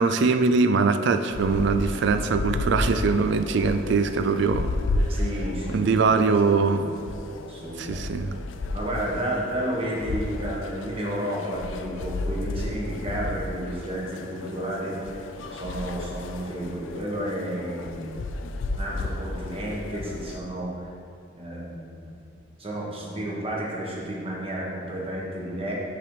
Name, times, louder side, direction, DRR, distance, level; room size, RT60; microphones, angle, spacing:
voice 1, 0.0-4.7 5.7-6.9 7.8-8.4, right 4 dB, 65° right, 9 dB, 0.4 m, -22 dB
sound 1, 1.3-20.4, left 2 dB, 80° left, 0.4 m, -33 dB
voice 2, 5.1-5.9 6.1-6.9 7.4-8.2 8.7-15.1 15.5-18.4 18.7-20.7 21.3-22.2 22.6-25.7, right 1 dB, 30° right, -4 dB, 1.3 m, -32 dB
5.8 x 5.2 x 4.8 m, 2.3 s
head